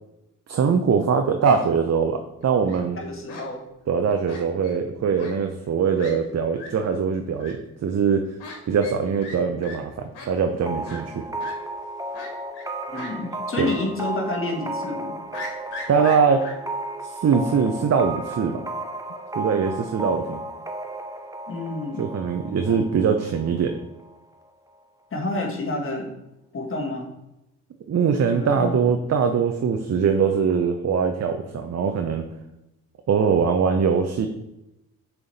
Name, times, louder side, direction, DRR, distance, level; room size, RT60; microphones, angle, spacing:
voice 1, 0.5-3.0 3.9-8.2 8.7-11.2 13.6-13.7 15.9-16.4 17.0-18.6 19.4-20.4 22.0-23.7 27.9-32.2 33.1-34.3, right 6 dB, 40° right, 5 dB, 0.7 m, -22 dB
Fowl, 2.4-2.8 3.3-3.4 4.3-4.8 5.2-5.3 5.6-5.7 6.0-6.1 6.5-6.7 7.4-7.5 8.4-8.6 8.8-9.0 9.2-9.4 9.6-9.8 10.1-10.3 10.8-11.0 11.4-11.5 12.1-12.7 12.9-13.1 13.6-13.7 14.1-14.2 15.3-16.5, left 2 dB, 85° left, 1.3 m, -38 dB
voice 2, 3.0-3.6 12.9-15.1 21.5-22.1 22.7-22.8 25.1-26.1 26.5-27.1 28.3-29.1, left 2 dB, 35° left, 0 dB, 1.6 m, -29 dB
sound 1, 10.7-24.2, right 2 dB, 10° right, 0.8 m, -34 dB
6.8 x 3.5 x 4.1 m, 0.90 s
supercardioid pair, 50°, 39 cm